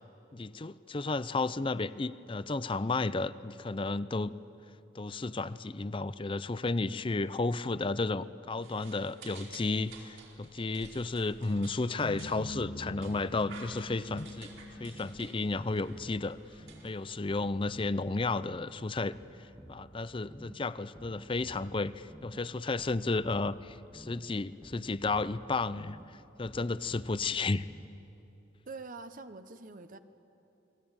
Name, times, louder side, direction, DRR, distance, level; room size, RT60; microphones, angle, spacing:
voice 1, 0.3-4.3 4.9-14.5 14.8-16.4 16.8-19.1 19.4-27.7, left 3 dB, 25° left, 15 dB, 0.5 m, -33 dB
sound 1, 8.6-17.6, right 3 dB, 85° right, 4.7 m, -53 dB
sound 2, 12.0-16.4, left 1 dB, 65° left, 2.1 m, -44 dB
sound 3, 13.6-28.3, right 1 dB, 10° right, 0.8 m, -54 dB
voice 2, 28.7-30.0, right 3 dB, 45° right, 10 dB, 1.0 m, -45 dB
29.0 x 21.0 x 8.9 m, 2.9 s
head